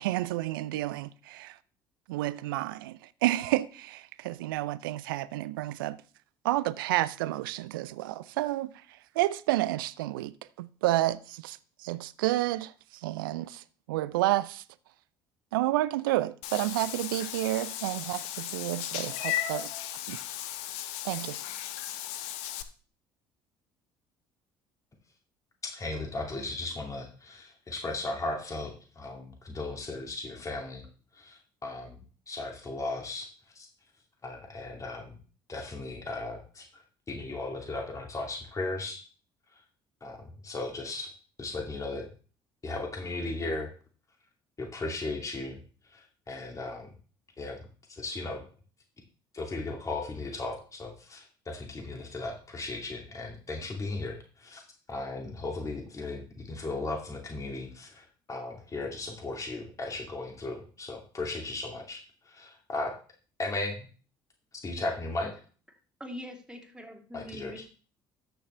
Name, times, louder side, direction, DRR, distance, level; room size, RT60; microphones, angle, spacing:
voice 1, 0.0-1.6 2.1-6.0 6.4-14.6 15.5-20.2 21.0-21.4, right 16 dB, 80° right, 0.4 m, -30 dB
Meow / Water / Bathtub (filling or washing), 16.4-22.6, left 12 dB, 70° left, 0.7 m, -36 dB
voice 2, 25.6-30.8 31.1-32.0 32.3-33.3 33.6-33.7 34.2-35.2 35.5-36.7 37.1-39.0 40.0-40.2 40.4-41.1 41.4-42.0 42.6-43.7 44.6-45.6 45.9-46.9 47.4-47.6 47.9-48.4 49.3-54.6 54.9-62.0 62.3-62.9 63.4-63.9 64.6-65.3 67.1-67.5, left 2 dB, 30° left, 2.5 m, -36 dB
voice 3, 66.0-67.7, equal, 5° right, 2.9 m, -43 dB
13.5 x 6.4 x 3.3 m
hypercardioid pair, 55°, 11 cm